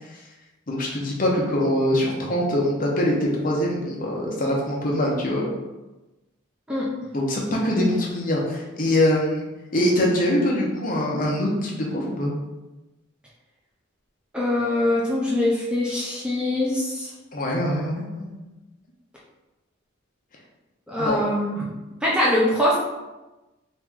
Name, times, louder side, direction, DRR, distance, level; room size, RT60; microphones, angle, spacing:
voice 1, 0.7-5.4 7.1-9.4 9.7-12.3 17.3-18.4 21.0-21.2, left 1 dB, 40° left, -2 dB, 0.7 m, -23 dB
voice 2, 14.3-17.1 20.9-21.7 22.0-22.8, left 1 dB, 5° right, -5 dB, 0.5 m, -23 dB
3.1 x 3.0 x 3.6 m, 1.1 s
head